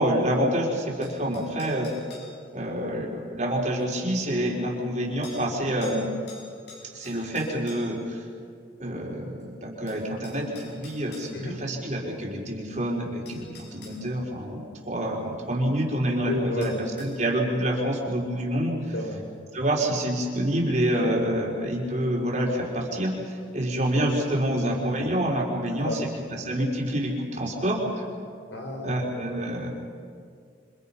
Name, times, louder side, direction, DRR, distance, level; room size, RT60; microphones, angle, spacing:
voice 1, 0.0-1.9 2.5-6.1 6.9-8.2 8.8-18.8 19.5-26.1 26.4-28.0 28.8-29.7, right 1 dB, 40° right, -1 dB, 4.2 m, -27 dB
sound 1, 1.0-2.3 3.8-3.9 5.2-5.4 5.8-6.0 6.3-8.0 9.4-9.5 9.9-11.3 12.7-12.8 13.3-14.0 16.6-17.1, left 4 dB, 65° left, 7.8 m, -47 dB
voice 2, 16.3-16.8 18.9-19.2 25.8-26.0 28.5-29.1, left 1 dB, 85° left, 1 dB, 5.4 m, -31 dB
28.0 x 26.0 x 5.6 m, 2.2 s
head